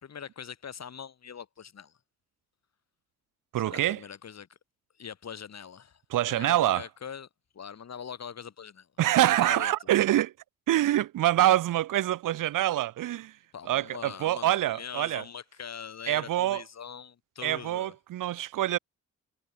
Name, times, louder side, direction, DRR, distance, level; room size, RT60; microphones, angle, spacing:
voice 1, 0.0-2.0 3.6-4.6 5.0-6.0 6.3-7.3 7.5-8.9 9.1-9.9 13.5-17.9, left 7 dB, 55° left, 4.9 m, -42 dB
voice 2, 3.5-4.0 6.1-6.8 9.0-10.3 10.7-13.3 13.7-15.2 16.1-16.6 17.4-18.8, right 13 dB, 85° right, 0.9 m, -25 dB
cardioid pair, 95°, 31 cm